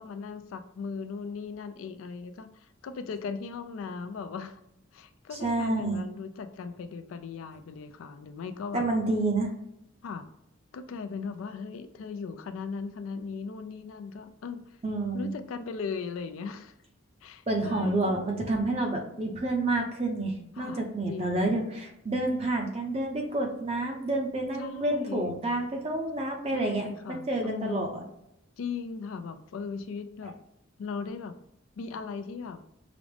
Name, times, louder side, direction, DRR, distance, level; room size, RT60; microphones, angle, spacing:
voice 1, 0.0-4.6 4.9-8.9 10.0-10.3 10.7-14.8 15.1-16.7 17.2-18.2 20.6-21.6 24.6-25.3 26.5-28.0 28.6-30.4 30.8-31.3 31.8-32.6, left 5 dB, 80° left, 10 dB, 0.3 m, -38 dB
voice 2, 5.3-6.0 8.7-9.5 14.8-15.3 17.5-27.9, right 2 dB, 30° right, 2 dB, 0.6 m, -29 dB
4.9 x 2.0 x 3.2 m, 0.81 s
head